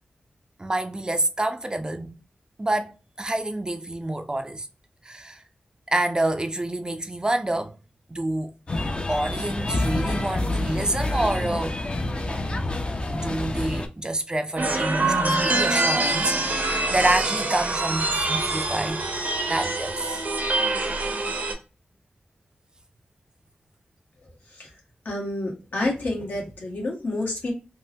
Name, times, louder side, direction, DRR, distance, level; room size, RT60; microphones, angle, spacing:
voice 1, 0.6-2.1 2.6-4.7 5.0-5.4 5.9-7.8 8.1-8.5 9.1-11.8 13.1-19.1 19.5-20.2, right 1 dB, 25° right, 0.4 m, -27 dB
sound 1, 8.7-13.9, left 2 dB, 35° left, 0.5 m, -27 dB
sound 2, 14.6-21.5, right 2 dB, 65° right, 0.7 m, -25 dB
voice 2, 25.0-27.5, left 2 dB, 80° left, 1.2 m, -28 dB
3.4 x 2.1 x 2.6 m
wide cardioid pair, 65°, 3 cm